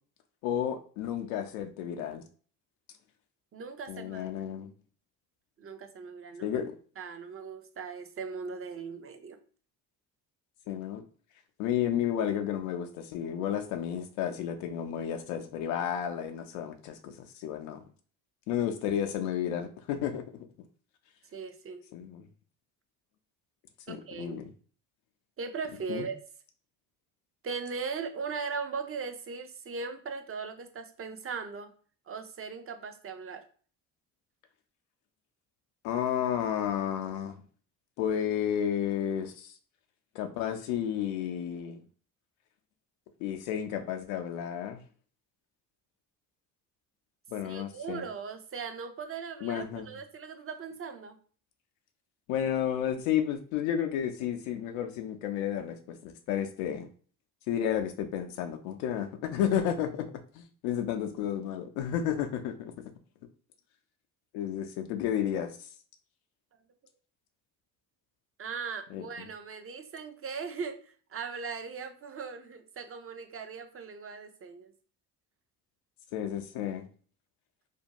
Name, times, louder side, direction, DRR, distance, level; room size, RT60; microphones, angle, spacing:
voice 1, 0.4-2.2 3.9-4.7 6.4-6.7 10.7-11.0 11.6-17.8 18.5-20.2 21.9-22.2 23.9-24.5 25.9-26.1 35.8-37.4 38.0-39.6 40.1-41.8 43.2-44.8 47.3-48.0 49.4-49.9 52.3-56.9 57.5-62.7 64.3-65.7 68.9-69.0 76.1-76.9, left 9 dB, 80° left, 6 dB, 0.5 m, -32 dB
voice 2, 3.5-4.3 5.6-6.6 7.0-9.4 21.3-21.9 23.9-24.4 25.4-26.2 27.4-31.7 32.1-33.4 47.4-51.2 68.4-74.7, right 5 dB, 30° right, 7 dB, 0.6 m, -39 dB
2.5 x 2.1 x 2.9 m, 0.43 s
hypercardioid pair, 60°, 46 cm